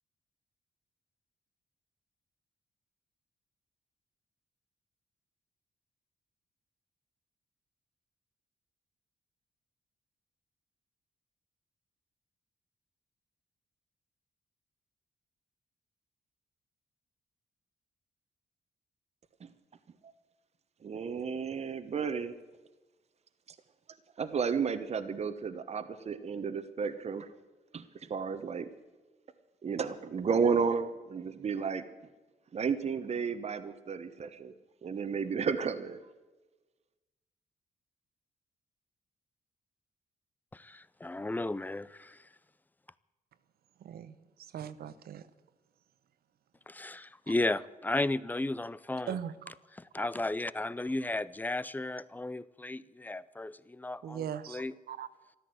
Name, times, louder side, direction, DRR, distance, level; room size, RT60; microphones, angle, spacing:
voice 1, 20.8-22.3 24.2-27.3 27.7-28.7 29.6-31.8 32.5-34.5 34.8-36.0, right 6 dB, 45° right, 10 dB, 1.1 m, -32 dB
voice 2, 40.5-42.3 46.7-49.1 49.9-54.7, left 2 dB, 10° left, 19 dB, 0.5 m, -34 dB
voice 3, 43.8-45.3 49.1-49.5 50.0-50.1 54.0-55.1, right 9 dB, 80° right, 13 dB, 1.0 m, -40 dB
14.0 x 13.0 x 7.9 m, 1.2 s
cardioid pair, 125°, 16 cm